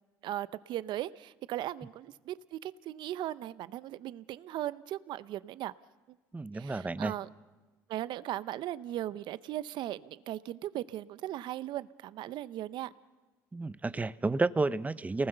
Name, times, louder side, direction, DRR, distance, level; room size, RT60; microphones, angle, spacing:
voice 1, 0.2-5.7 6.5-7.3 7.9-12.9, right 13 dB, 70° right, 16 dB, 0.8 m, -38 dB
voice 2, 6.3-7.1 13.5-15.3, right 3 dB, 20° right, 15 dB, 0.9 m, -31 dB
29.5 x 19.5 x 6.8 m, 1.2 s
supercardioid pair, 80°, 8 cm